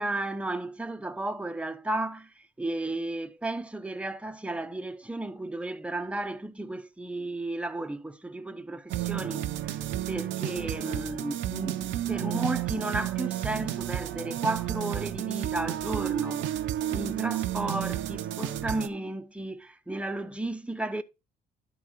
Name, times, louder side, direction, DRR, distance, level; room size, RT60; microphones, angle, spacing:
voice 1, 0.0-2.3 2.6-9.8 10.1-16.5 16.9-21.0, right 2 dB, 5° right, 0.7 m, -33 dB
sound 1, 8.9-18.9, right 13 dB, 75° right, 0.7 m, -31 dB
11.5 x 4.0 x 4.4 m
cardioid pair, 90°, 20 cm